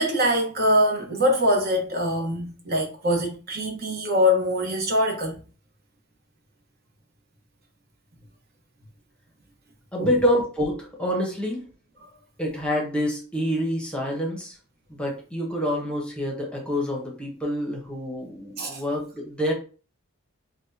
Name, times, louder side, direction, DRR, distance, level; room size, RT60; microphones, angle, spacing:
voice 1, 0.0-5.4 10.0-10.1 12.0-12.1 18.6-18.8, equal, 45° right, 1.0 m, -23 dB
voice 2, 9.9-11.6 12.4-14.6 14.9-19.5, equal, 5° left, 0.9 m, -27 dB
5.9 x 2.2 x 2.7 m
head